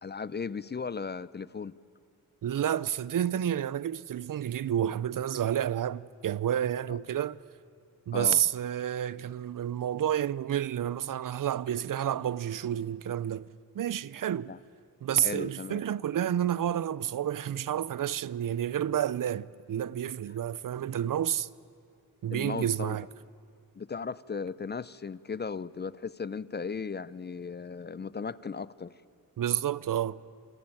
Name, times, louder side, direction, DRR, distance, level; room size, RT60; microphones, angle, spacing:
voice 1, 0.0-1.8 6.9-7.0 8.1-8.4 14.5-14.6 15.2-15.8 22.3-23.0 23.8-29.0, left 5 dB, 30° left, 0.5 m, -36 dB
voice 2, 2.4-7.4 8.1-13.5 13.7-14.5 15.0-21.5 22.2-23.1 29.4-30.2, right 10 dB, 65° right, 0.6 m, -30 dB
28.5 x 20.0 x 9.1 m
cardioid pair, 90°, 35 cm